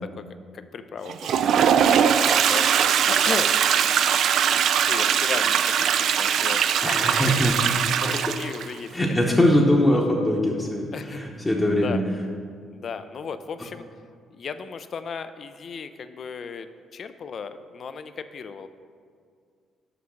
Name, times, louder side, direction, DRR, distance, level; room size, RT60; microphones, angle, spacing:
voice 1, 0.5-1.4 1.7-3.5 4.8-5.9 6.2-7.4 8.0-9.3 10.9-11.2 11.7-12.0 12.7-13.8 14.3-18.7, left 5 dB, 55° left, 11 dB, 0.4 m, -35 dB
Toilet flush, 1.1-8.7, right 8 dB, 70° right, 0.3 m, -21 dB
voice 2, 6.8-7.6 8.9-12.0, left 1 dB, 15° left, -3 dB, 0.9 m, -21 dB
5.9 x 5.7 x 6.3 m, 2.1 s
cardioid pair, 90°, 0 cm